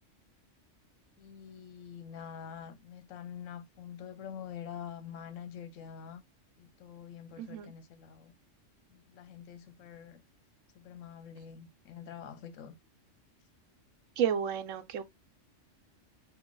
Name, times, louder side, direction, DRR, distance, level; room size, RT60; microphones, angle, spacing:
voice 1, 1.2-6.2 6.6-8.3 8.9-10.2 10.7-12.8, left 8 dB, 80° left, 1.0 m, -46 dB
voice 2, 7.4-7.7 14.2-15.0, right 8 dB, 85° right, 1.0 m, -31 dB
3.7 x 3.3 x 2.3 m
omnidirectional pair, 1.3 m